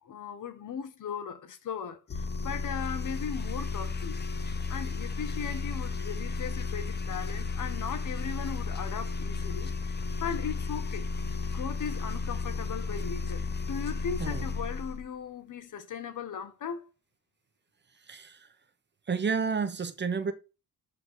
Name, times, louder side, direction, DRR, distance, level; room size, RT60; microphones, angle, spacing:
voice 1, 0.0-4.2 4.7-11.1 11.5-16.8, left 7 dB, 60° left, 1.2 m, -38 dB
sound 1, 2.1-15.1, left 4 dB, 30° left, 0.9 m, -33 dB
voice 2, 18.1-18.5 19.1-20.3, right 5 dB, 30° right, 0.9 m, -30 dB
7.6 x 4.3 x 6.6 m
wide cardioid pair, 165°, 36 cm